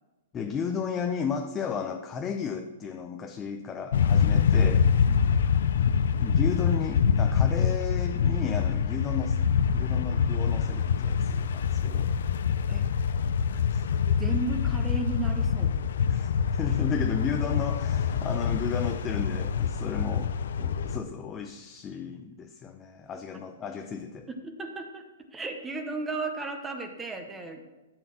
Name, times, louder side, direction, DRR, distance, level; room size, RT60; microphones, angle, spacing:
voice 1, 0.3-4.9 6.2-9.4 9.7-12.1 13.5-13.9 16.1-24.3, left 6 dB, 15° left, 5 dB, 0.5 m, -34 dB
sound 1, 3.9-21.0, left 7 dB, 70° left, 0.6 m, -25 dB
voice 2, 5.1-5.4 12.7-12.9 14.2-15.7 24.3-25.0 25.3-27.6, right 3 dB, 10° right, 5 dB, 0.8 m, -34 dB
12.5 x 4.5 x 6.1 m, 1.1 s
hypercardioid pair, 155°, 0 cm